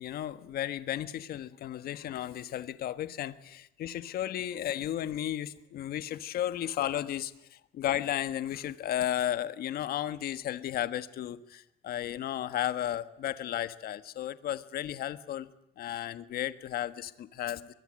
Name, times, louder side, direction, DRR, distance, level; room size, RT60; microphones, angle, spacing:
voice 1, 0.0-15.5 15.8-17.7, left 11 dB, 65° left, 12 dB, 1.5 m, -34 dB
24.0 x 22.5 x 7.7 m, 0.80 s
cardioid pair, 110°, 17 cm